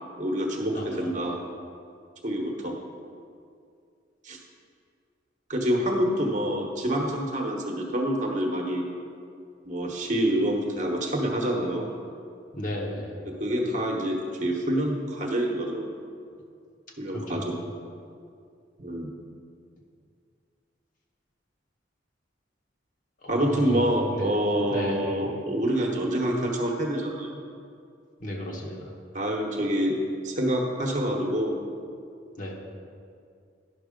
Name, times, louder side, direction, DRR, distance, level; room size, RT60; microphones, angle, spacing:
voice 1, 0.2-1.3 2.2-2.8 4.2-4.4 5.5-8.9 9.6-11.9 13.3-15.9 17.0-17.6 18.8-19.1 23.3-27.4 29.1-29.9 30.2-31.6, right 1 dB, 40° right, 0 dB, 1.1 m, -27 dB
voice 2, 0.7-1.3 12.5-13.1 17.1-17.4 23.2-23.8 24.1-24.3 24.7-25.0 28.2-28.9 32.4-32.5, left 1 dB, 45° left, -1 dB, 1.3 m, -34 dB
10.5 x 6.1 x 5.1 m, 2.3 s
head